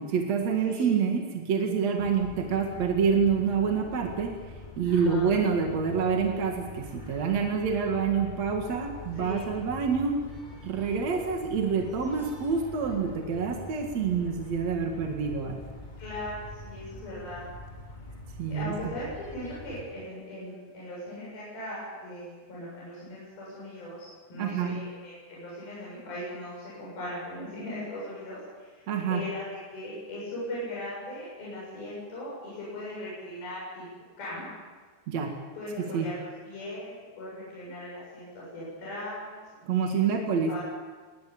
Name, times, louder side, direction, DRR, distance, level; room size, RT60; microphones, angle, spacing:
voice 1, 0.0-4.4 4.8-10.3 10.6-15.6 18.4-18.7 24.4-24.8 28.9-29.2 35.1-35.3 35.8-36.1 39.6-40.5, right 6 dB, 50° right, 3 dB, 2.7 m, -27 dB
sound 1, 2.0-19.8, left 1 dB, 15° left, 2.2 m, -44 dB
voice 2, 4.8-5.3 9.1-9.5 16.0-17.5 18.5-28.8 29.1-29.4 29.7-33.9 34.2-34.5 35.6-39.4 39.7-40.0 40.5-40.6, left 1 dB, 65° left, -7 dB, 9.3 m, -39 dB
22.5 x 20.0 x 8.7 m, 1.5 s
omnidirectional pair, 4.7 m